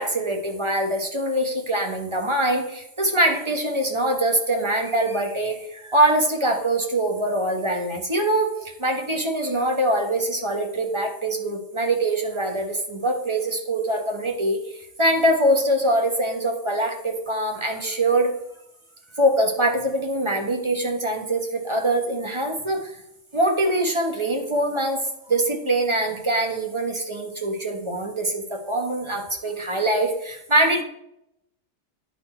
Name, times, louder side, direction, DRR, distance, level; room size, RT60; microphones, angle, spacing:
voice 1, 0.0-18.3 19.2-23.0 23.3-30.8, right 1 dB, 25° right, 3 dB, 1.1 m, -23 dB
10.5 x 4.2 x 4.4 m, 0.79 s
omnidirectional pair, 1.2 m